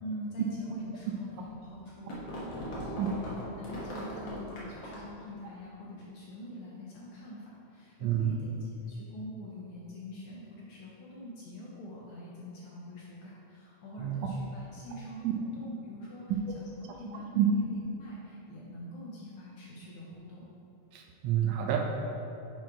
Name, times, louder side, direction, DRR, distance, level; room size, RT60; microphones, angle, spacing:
voice 1, 0.0-20.4, left 1 dB, 70° left, -5 dB, 1.3 m, -45 dB
sound 1, 1.4-5.2, equal, 55° left, 1.5 m, -40 dB
voice 2, 8.0-8.4 14.0-14.3 15.2-15.3 17.4-17.5 20.9-21.8, right 11 dB, 80° right, 2 dB, 1.8 m, -28 dB
6.0 x 4.6 x 4.7 m, 2.8 s
omnidirectional pair, 3.3 m